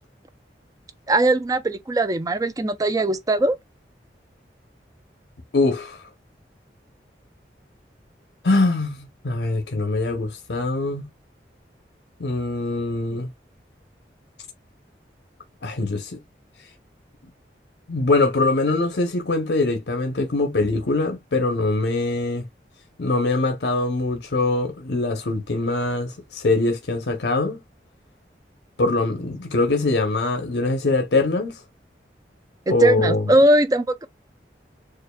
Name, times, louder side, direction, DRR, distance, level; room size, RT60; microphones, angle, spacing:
voice 1, 1.1-3.6 32.7-34.1, right 1 dB, 20° right, 0.4 m, -20 dB
voice 2, 5.5-6.0 8.4-11.0 12.2-13.3 15.6-16.2 17.9-22.5 23.0-27.6 28.8-31.6 32.7-33.3, left 2 dB, 80° left, 0.7 m, -23 dB
6.6 x 2.5 x 2.2 m
head